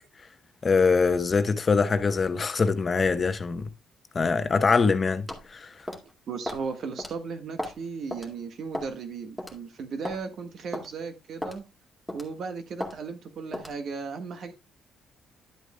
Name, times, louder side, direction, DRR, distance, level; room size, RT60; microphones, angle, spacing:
voice 1, 0.6-3.7 4.1-5.9, left 4 dB, 35° left, 0.9 m, -23 dB
sound 1, 5.3-5.5 5.9-6.1 6.5-6.7 7.0-7.1 7.6-7.8 8.1-8.3 8.7-9.0 9.4-9.5 10.0-10.2 10.7-10.9 11.4-11.6 12.1-12.3 12.8-13.0 13.5-13.8, left 1 dB, ahead, 2.0 m, -34 dB
voice 2, 6.0-11.6 12.1-14.5, right 5 dB, 65° right, 1.5 m, -36 dB
11.0 x 8.0 x 2.2 m
cardioid pair, 90°, 0 cm